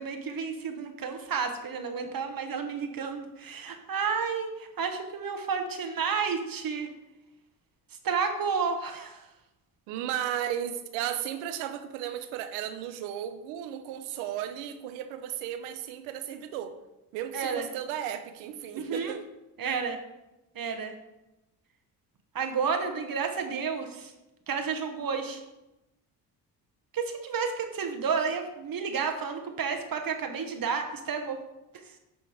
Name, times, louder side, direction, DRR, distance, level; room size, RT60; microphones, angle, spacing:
voice 1, 0.0-6.9 8.0-9.3 17.3-17.7 18.7-19.1 19.6-20.0 20.5-20.9 22.3-24.1 24.5-25.4 26.9-31.4 31.7-32.0, right 5 dB, 50° right, 5 dB, 1.2 m, -31 dB
voice 2, 9.9-16.7 17.1-19.2, right 10 dB, 85° right, 9 dB, 0.8 m, -34 dB
10.5 x 3.8 x 4.8 m, 0.97 s
hypercardioid pair, 50°, 46 cm